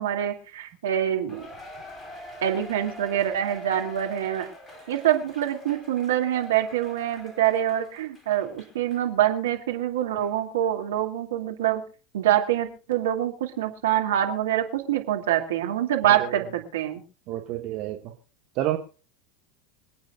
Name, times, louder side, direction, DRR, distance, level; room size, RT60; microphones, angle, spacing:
voice 1, 0.0-1.4 2.4-4.5 4.9-11.8 12.1-17.0, right 11 dB, 70° right, 4 dB, 2.5 m, -25 dB
Cheering, 1.3-9.1 9.5-9.6 10.2-10.3, left 1 dB, 10° left, 4.5 m, -45 dB
voice 2, 16.1-16.4 17.3-18.1 18.5-18.8, right 14 dB, 50° right, 4 dB, 1.5 m, -29 dB
26.0 x 8.8 x 2.4 m, 0.36 s
figure-of-eight pair, 80°, 0 cm